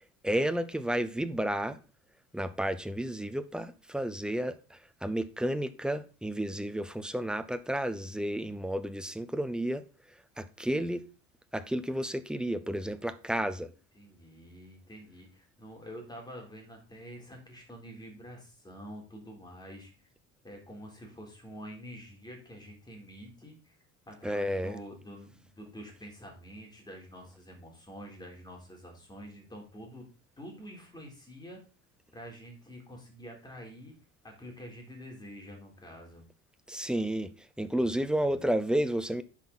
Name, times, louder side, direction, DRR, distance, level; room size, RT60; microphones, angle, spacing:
voice 1, 0.2-1.8 2.3-9.9 10.4-11.1 11.5-13.7 24.2-24.8 36.7-39.2, right 1 dB, 5° right, 0.7 m, -31 dB
voice 2, 13.9-19.9 20.4-23.8 24.1-30.1 30.4-31.6 32.1-33.9 34.2-36.2 37.7-38.4, equal, 15° left, 3.8 m, -47 dB
10.5 x 5.8 x 4.1 m
cardioid pair, 125°, 30 cm